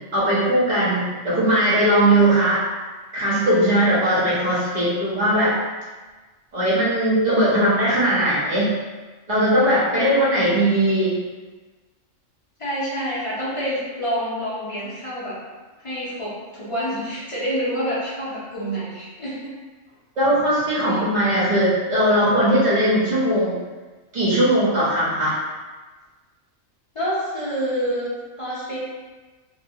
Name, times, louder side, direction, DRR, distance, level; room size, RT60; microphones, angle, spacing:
voice 1, 0.0-2.6 3.1-5.6 6.5-8.8 9.3-11.2 20.2-23.6 24.1-25.4, right 1 dB, 35° right, -9 dB, 0.8 m, -19 dB
voice 2, 9.9-10.8 12.6-15.4 15.8-19.5 20.9-21.0 26.9-28.8, equal, 50° left, -10 dB, 0.3 m, -28 dB
2.7 x 2.1 x 2.7 m, 1.3 s
omnidirectional pair, 1.4 m